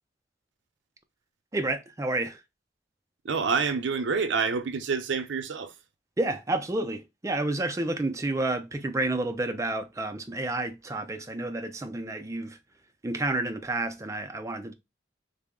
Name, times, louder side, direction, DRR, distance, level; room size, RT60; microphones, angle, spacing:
voice 1, 1.5-2.4 6.2-12.6 13.0-14.7, right 2 dB, 15° right, 0.4 m, -30 dB
voice 2, 3.2-5.7, right 5 dB, 80° right, 0.5 m, -27 dB
3.7 x 2.0 x 3.6 m
head